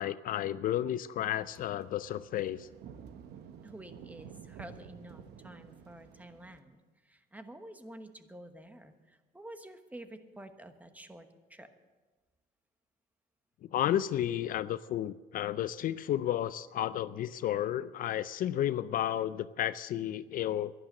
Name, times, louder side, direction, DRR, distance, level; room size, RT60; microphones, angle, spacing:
voice 1, 0.0-2.7 13.7-20.7, left 11 dB, 55° left, 15 dB, 0.4 m, -32 dB
sound 1, 1.3-6.6, right 7 dB, 75° right, 0.9 m, -51 dB
voice 2, 3.6-11.7, right 1 dB, 10° right, 8 dB, 1.2 m, -50 dB
11.5 x 11.0 x 7.5 m, 1.3 s
cardioid pair, 110°, 17 cm